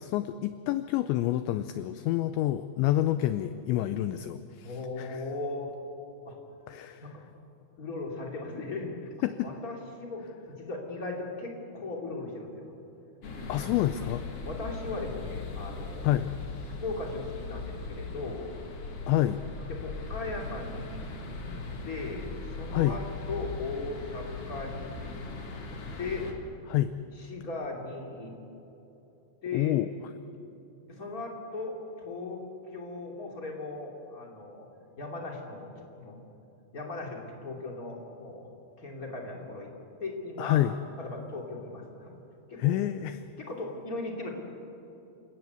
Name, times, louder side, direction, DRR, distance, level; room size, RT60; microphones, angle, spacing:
voice 1, 0.0-5.2 6.7-7.1 9.2-9.5 13.5-14.2 16.0-16.3 19.1-19.4 22.7-23.0 26.7-26.9 29.5-29.9 40.4-40.8 42.6-43.3, left 14 dB, 90° left, 11 dB, 2.5 m, -28 dB
voice 2, 4.6-5.7 6.2-6.4 7.0-7.2 7.8-9.0 9.4-12.7 13.5-13.7 14.4-16.2 16.8-18.5 19.8-21.0 21.8-23.0 23.3-25.2 26.0-26.3 27.2-28.3 29.4-29.8 30.9-32.4 32.7-34.7 35.0-35.7 36.0-36.2 36.7-38.5 38.8-39.7 40.0-40.6 41.0-42.1 42.5-42.7 43.4-44.3, left 3 dB, 25° left, 0 dB, 2.0 m, -38 dB
sound 1, 13.2-26.3, left 3 dB, 55° left, 1.6 m, -39 dB
28.5 x 17.0 x 8.2 m, 2.9 s
omnidirectional pair, 5.9 m